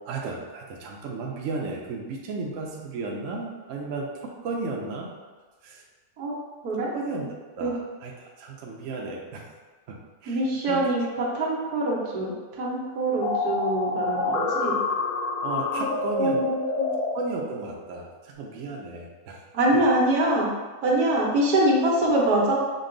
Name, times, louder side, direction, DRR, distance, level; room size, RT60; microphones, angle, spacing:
voice 1, 0.0-5.1 5.6-5.8 6.9-9.4 9.9-10.8 14.2-14.5 15.4-16.4 17.1-19.4 22.0-22.1, right 3 dB, 65° right, -1 dB, 0.9 m, -34 dB
voice 2, 6.6-7.3 7.6-7.7 10.3-14.8 15.7-15.9 16.2-16.9 19.5-20.5 20.8-22.6, right 1 dB, 85° right, -3 dB, 1.4 m, -24 dB
sound 1, 13.2-17.1, left 3 dB, 85° left, 1.1 m, -27 dB
5.2 x 2.3 x 3.8 m, 1.4 s
omnidirectional pair, 1.6 m